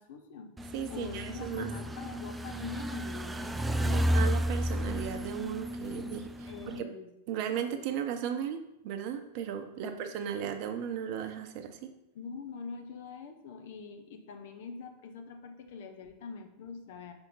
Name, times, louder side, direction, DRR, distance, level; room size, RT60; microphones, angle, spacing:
voice 1, 0.0-4.3 6.5-7.1 9.8-10.1 12.1-17.1, left 5 dB, 55° left, 5 dB, 0.8 m, -44 dB
sound 1, 0.6-6.8, equal, 10° right, 0.3 m, -32 dB
voice 2, 0.7-1.7 3.9-6.5 6.8-6.9 7.3-11.9, right 8 dB, 45° right, 6 dB, 0.7 m, -36 dB
5.7 x 3.5 x 5.6 m, 0.86 s
figure-of-eight pair, 90°, 0 cm